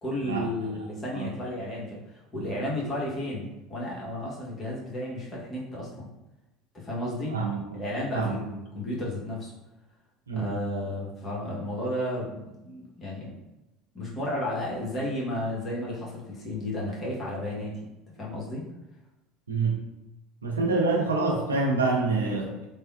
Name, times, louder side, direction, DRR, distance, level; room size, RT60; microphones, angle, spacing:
voice 1, 0.0-6.1 6.7-7.4 7.7-9.5 10.3-13.4 13.9-17.9 18.2-18.6, left 1 dB, 25° left, -5 dB, 1.1 m, -33 dB
voice 2, 7.3-7.6 8.1-8.4 10.3-10.5 19.5-19.8 20.4-22.7, right 3 dB, 85° right, -1 dB, 0.5 m, -26 dB
3.4 x 2.1 x 2.4 m, 0.96 s
figure-of-eight pair, 70°, 0 cm